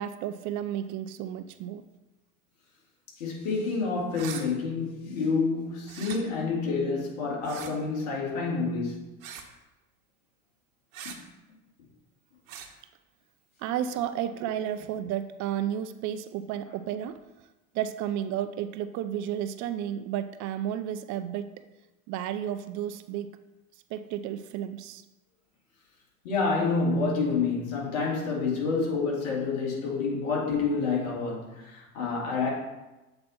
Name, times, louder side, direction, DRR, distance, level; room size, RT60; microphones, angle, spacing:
voice 1, 0.0-1.8 13.6-17.2 17.7-21.5 22.1-23.3 23.9-25.0 30.1-30.3, right 10 dB, 45° right, 12 dB, 0.5 m, -32 dB
voice 2, 3.2-9.0 26.2-32.5, left 4 dB, 70° left, -3 dB, 2.5 m, -28 dB
sound 1, 4.1-4.4 5.8-6.2 7.4-7.7 9.2-9.5 10.9-11.2 12.5-12.7, right 8 dB, 70° right, 1.0 m, -40 dB
7.7 x 4.2 x 4.3 m, 1.0 s
hypercardioid pair, 85°, 42 cm